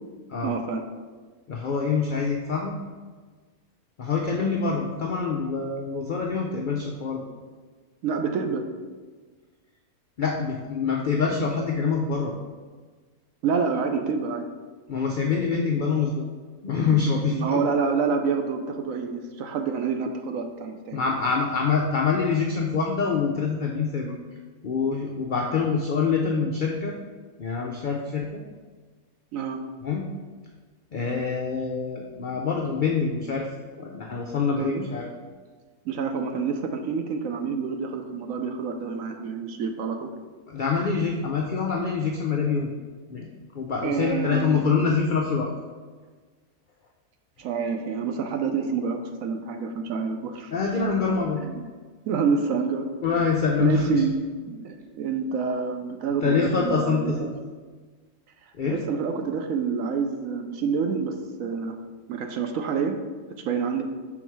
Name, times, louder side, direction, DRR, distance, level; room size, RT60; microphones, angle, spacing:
voice 1, 0.4-0.9 8.0-8.6 13.4-14.4 17.3-21.0 29.3-29.6 34.5-34.9 35.8-40.1 43.8-44.6 47.4-50.5 51.4-51.7 52.1-52.9 53.6-54.1 54.5-57.3 58.7-61.8 62.1-63.0 63.4-63.8, right 5 dB, 70° right, 6 dB, 0.9 m, -27 dB
voice 2, 1.5-2.8 4.0-7.2 10.2-12.3 14.9-16.2 16.6-17.6 20.9-24.2 24.6-26.9 27.4-28.4 29.8-30.0 30.9-33.5 33.8-35.0 40.5-42.7 43.1-43.3 43.5-45.5 50.5-51.4 53.0-54.0 56.2-57.3 58.6-58.8, left 5 dB, 85° left, 0 dB, 0.4 m, -25 dB
6.0 x 3.9 x 4.6 m, 1.4 s
omnidirectional pair, 1.6 m